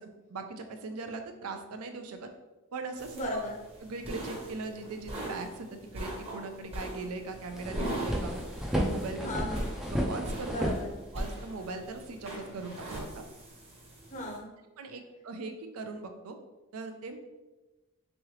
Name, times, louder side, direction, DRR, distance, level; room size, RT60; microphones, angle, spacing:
voice 1, 0.0-2.3 2.7-3.4 3.8-8.3 8.7-9.3 9.9-10.7 11.1-13.2 14.8-16.4 16.7-17.2, right 3 dB, 75° right, 6 dB, 0.5 m, -40 dB
sound 1, 3.0-14.4, right 1 dB, 30° right, 0.9 m, -41 dB
voice 2, 3.1-3.6 9.2-9.7 10.5-10.9 14.1-14.5, left 1 dB, 35° left, -1 dB, 0.7 m, -35 dB
sound 2, 7.3-11.5, equal, ahead, 0.4 m, -33 dB
3.6 x 3.0 x 3.1 m, 1.1 s
head